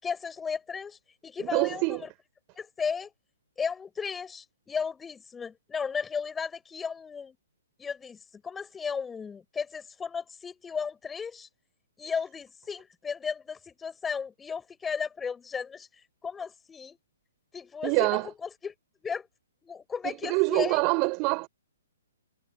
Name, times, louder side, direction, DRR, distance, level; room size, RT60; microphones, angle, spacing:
voice 1, 0.0-2.1 2.6-3.1 3.6-7.3 7.8-11.5 12.0-15.9 16.2-17.0 17.5-18.7 19.0-19.3 19.6-20.8, left 6 dB, 10° left, 5.0 m, -35 dB
voice 2, 1.4-2.1 17.8-18.3 20.0-21.5, right 32 dB, 30° right, 6.1 m, -26 dB
figure-of-eight pair, 125°, 0 cm